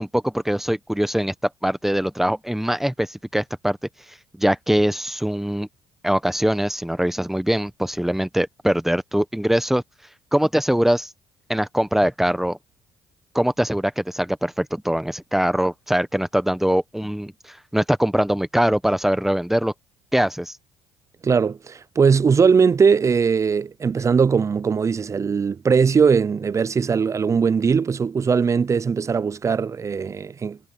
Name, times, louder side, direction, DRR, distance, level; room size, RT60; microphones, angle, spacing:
voice 1, 0.0-1.3 1.6-3.8 4.4-5.7 6.0-9.8 10.3-11.1 11.5-12.6 13.3-19.7 20.1-20.5, equal, 5° right, 1.2 m, -22 dB
voice 2, 21.2-30.6, right 6 dB, 30° right, 0.6 m, -20 dB
supercardioid pair, 70°, 10 cm